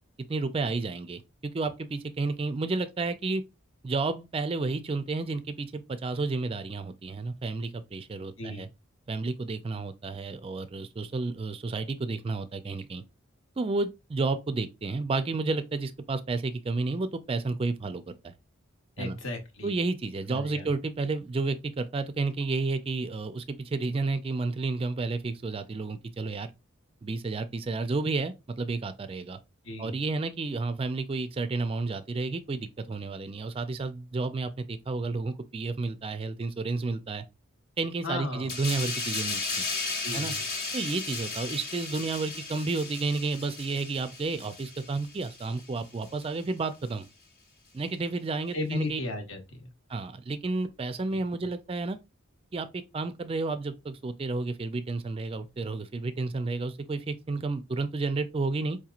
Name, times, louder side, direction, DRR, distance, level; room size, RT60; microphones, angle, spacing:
voice 1, 0.3-3.4 3.8-8.7 9.1-13.0 13.6-18.3 19.0-19.2 19.6-26.5 27.0-29.4 29.8-37.2 37.8-39.6 40.1-40.3 40.7-47.1 47.7-49.0 49.9-52.0 52.5-58.8, right 3 dB, 25° right, 0.3 m, -31 dB
voice 2, 8.4-8.7 19.0-19.8 20.3-20.7 29.6-30.0 38.0-38.5 40.0-40.4 48.5-49.6, left 2 dB, 65° left, 1.0 m, -35 dB
sound 1, 38.5-45.7 46.0-46.2, left 3 dB, 50° left, 0.9 m, -35 dB
4.7 x 2.9 x 2.4 m
head